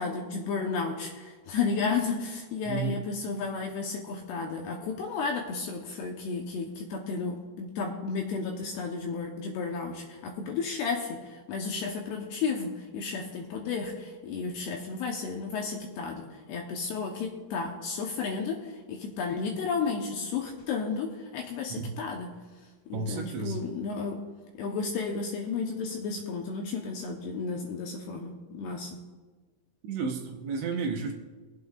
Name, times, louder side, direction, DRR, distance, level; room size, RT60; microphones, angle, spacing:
voice 1, 0.0-22.3 22.9-24.2 24.5-29.0, left 4 dB, 75° left, 1 dB, 2.5 m, -33 dB
voice 2, 2.7-3.0 21.7-21.9 22.9-23.6 29.8-31.1, right 5 dB, 75° right, 2 dB, 2.9 m, -32 dB
23.5 x 8.2 x 2.4 m, 1.4 s
omnidirectional pair, 5.6 m